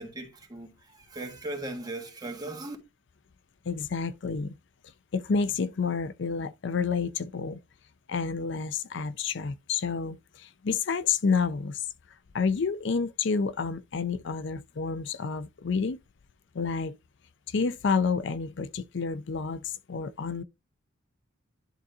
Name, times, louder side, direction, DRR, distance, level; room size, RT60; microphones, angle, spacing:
voice 1, 0.0-2.8, right 2 dB, 20° right, 1.5 m, -38 dB
voice 2, 3.7-4.5 5.1-7.6 8.1-11.8 12.3-16.0 16.5-17.0 17.5-20.4, left 5 dB, 65° left, 0.5 m, -29 dB
11.0 x 3.8 x 2.7 m
head